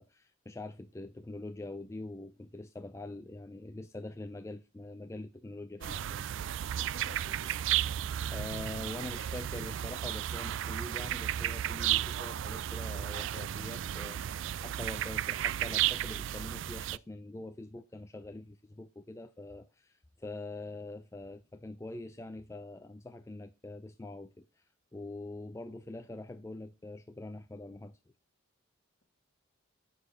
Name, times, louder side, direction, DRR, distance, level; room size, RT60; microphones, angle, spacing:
voice 1, 0.0-6.2 6.7-6.8 8.3-28.0, left 2 dB, 15° left, 0.4 m, -44 dB
voice 2, 5.8-6.3 6.7-7.7, left 2 dB, 50° left, 1.5 m, -52 dB
sound 1, 5.8-17.0, right 11 dB, 65° right, 0.3 m, -33 dB
10.0 x 4.1 x 5.1 m
head